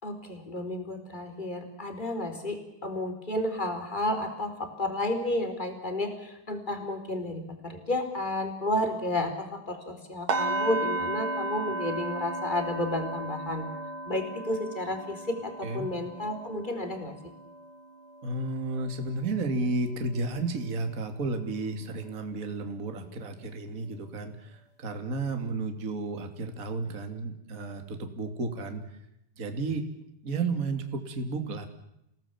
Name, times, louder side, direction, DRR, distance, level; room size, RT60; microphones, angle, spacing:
voice 1, 0.0-13.7 14.0-17.1, left 1 dB, 10° left, 6 dB, 4.2 m, -32 dB
sound 1, 10.3-20.2 20.5-20.8 21.3-21.4, right 2 dB, 60° right, 4.6 m, -35 dB
voice 2, 18.2-28.8 29.4-29.9 30.2-31.7, right 3 dB, 25° right, 6 dB, 2.7 m, -32 dB
29.0 x 19.0 x 7.4 m, 0.81 s
omnidirectional pair, 4.4 m